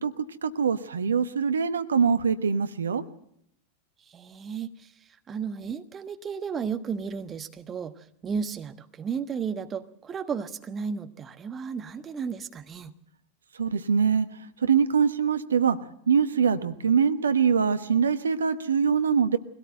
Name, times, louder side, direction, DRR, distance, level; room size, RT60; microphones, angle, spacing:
voice 1, 0.0-3.0 13.5-14.3 14.6-15.8 16.1-19.4, right 6 dB, 70° right, 11 dB, 1.2 m, -23 dB
voice 2, 4.0-12.9, right 6 dB, 20° right, 9 dB, 1.3 m, -34 dB
23.0 x 17.5 x 7.8 m, 0.72 s
figure-of-eight pair, 90°, 0 cm